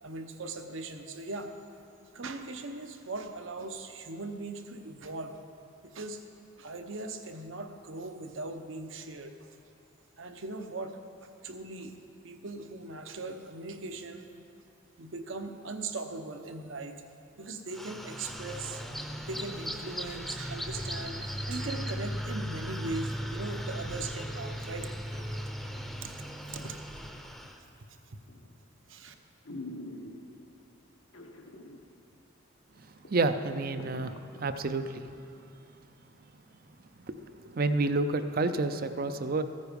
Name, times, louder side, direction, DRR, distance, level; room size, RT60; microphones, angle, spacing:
voice 1, 0.0-1.5 2.1-5.3 5.8-6.2 6.6-9.5 10.2-11.9 12.2-14.3 15.0-17.0 17.4-18.8 19.3-25.5 26.0-26.2 26.5-26.8 28.1-28.2 28.9-29.1, right 3 dB, 70° right, 6 dB, 0.9 m, -40 dB
sound 1, 17.7-27.6, equal, ahead, 0.7 m, -37 dB
sound 2, 28.3-28.6 29.1-29.2 29.4-30.5 31.1-31.8 32.1-32.2 32.7-32.8 33.0-34.9 35.4-35.5, left 1 dB, 75° left, 1.1 m, -44 dB
voice 2, 33.1-34.1 34.4-34.8 37.1-37.2 37.4-39.4, right 3 dB, 45° right, 10 dB, 0.5 m, -29 dB
14.5 x 9.5 x 5.2 m, 2.6 s
head